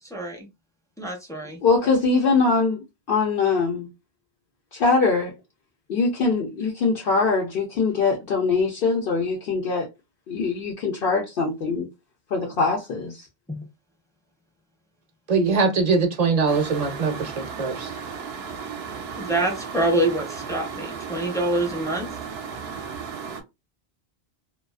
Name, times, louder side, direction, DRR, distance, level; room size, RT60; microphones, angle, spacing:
voice 1, 0.0-0.5 1.0-1.6 13.5-13.6 19.2-22.1, right 1 dB, 5° left, 0.5 m, -26 dB
voice 2, 1.6-3.9 4.7-5.3 5.9-9.9 10.3-11.9 12.3-13.3, left 4 dB, 70° left, 0.8 m, -22 dB
voice 3, 15.3-17.9, right 4 dB, 50° right, 0.6 m, -22 dB
sound 1, 16.5-23.4, right 6 dB, 80° right, 0.8 m, -35 dB
2.3 x 2.3 x 2.3 m
omnidirectional pair, 1.0 m